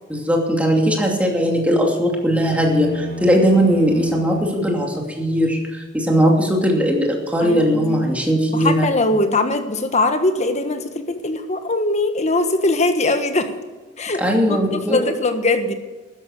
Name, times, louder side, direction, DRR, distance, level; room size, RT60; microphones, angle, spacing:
voice 1, 0.1-8.9 14.2-15.0, equal, 10° right, 0 dB, 2.7 m, -19 dB
sound 1, 2.4-4.6, left 1 dB, 35° right, 4.2 m, -32 dB
voice 2, 7.4-8.0 8.5-13.5 14.0-14.2 14.5-15.7, left 2 dB, 40° left, 8 dB, 1.3 m, -21 dB
13.0 x 11.0 x 6.6 m, 1.3 s
head